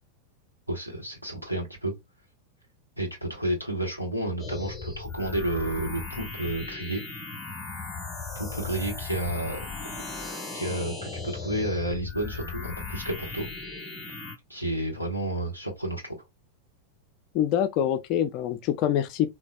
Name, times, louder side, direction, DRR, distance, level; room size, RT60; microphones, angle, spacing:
voice 1, 0.7-1.9 3.0-7.0 8.3-9.7 10.5-13.5 14.5-16.2, right 1 dB, 90° right, 1.0 m, -31 dB
sound 1, 4.4-14.4, left 4 dB, 15° left, 0.9 m, -37 dB
voice 2, 17.3-19.3, left 10 dB, 40° left, 0.4 m, -25 dB
3.9 x 2.1 x 2.2 m
figure-of-eight pair, 90°, 0 cm